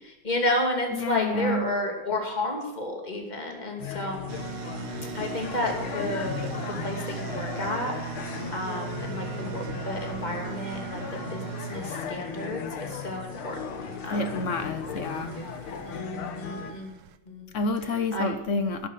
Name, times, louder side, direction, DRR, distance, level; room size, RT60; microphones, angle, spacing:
voice 1, 0.2-4.3 5.1-7.9 8.5-14.3 14.9-15.0 15.9-16.9 17.3-17.5 18.1-18.3, left 1 dB, 20° left, 2 dB, 2.4 m, -31 dB
voice 2, 0.9-1.7 14.1-15.3 17.5-18.9, left 2 dB, 60° left, 10 dB, 0.8 m, -28 dB
sound 1, 3.8-16.7, left 6 dB, 85° left, 2.0 m, -36 dB
sound 2, 4.3-17.2, right 14 dB, 80° right, 1.6 m, -40 dB
11.0 x 11.0 x 6.7 m, 0.88 s
omnidirectional pair, 2.3 m